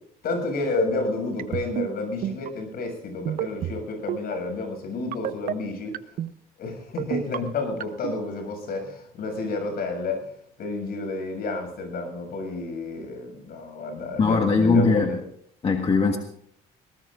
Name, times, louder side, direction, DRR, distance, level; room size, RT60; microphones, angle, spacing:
voice 1, 0.2-6.0 6.6-10.3 10.6-15.2, left 3 dB, 65° left, 4 dB, 7.1 m, -30 dB
sound 1, 1.4-1.9 2.2-2.5 3.2-3.7 4.1-4.3 5.1-5.5 5.9-6.3 7.0-7.4 7.8-8.1, right 11 dB, 60° right, 0.8 m, -28 dB
voice 2, 14.2-15.1 15.6-16.2, left 4 dB, 35° left, 3 dB, 1.6 m, -20 dB
21.5 x 19.0 x 2.6 m, 0.68 s
cardioid pair, 110°, 17 cm